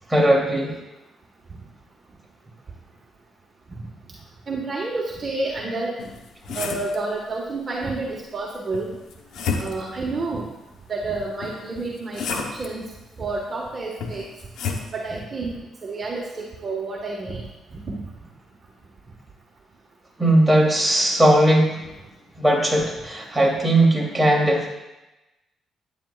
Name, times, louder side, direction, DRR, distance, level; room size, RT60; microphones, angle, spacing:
voice 1, 0.1-0.8 20.2-21.8 22.4-24.7, right 1 dB, 10° right, -3 dB, 3.5 m, -18 dB
voice 2, 4.5-6.0 6.5-8.9 9.6-10.5 10.9-12.9 13.2-14.3 14.9-17.4 17.7-18.0, right 3 dB, 40° right, -2 dB, 1.8 m, -29 dB
sound 1, 6.0-7.0 8.7-10.0 11.4-12.7 14.0-14.9, left 5 dB, 80° left, 1.1 m, -31 dB
13.5 x 9.8 x 2.6 m, 0.99 s
cardioid pair, 90°, 0 cm